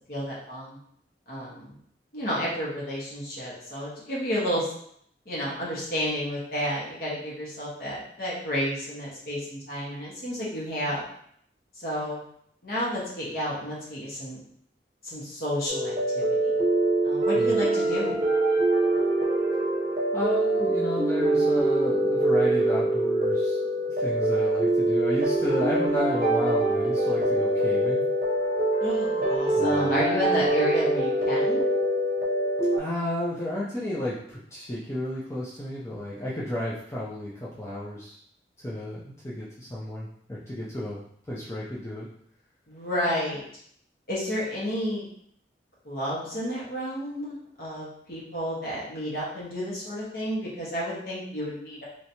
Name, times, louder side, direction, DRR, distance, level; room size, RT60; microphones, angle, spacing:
voice 1, 0.1-0.8 1.3-1.7 2.1-4.7 5.3-11.0 11.7-12.2 12.6-14.4 15.0-16.6 17.0-18.2 28.8-31.6 42.7-43.4 44.1-45.1 45.8-51.8, equal, 55° left, -6 dB, 1.3 m, -31 dB
sound 1, 15.7-32.8, right 1 dB, 45° right, 0.7 m, -24 dB
voice 2, 20.1-23.6 24.0-28.1 29.5-30.0 32.7-38.2 38.6-41.0 41.3-42.1, left 1 dB, 15° left, -7 dB, 0.5 m, -32 dB
3.2 x 2.9 x 2.8 m, 0.66 s
head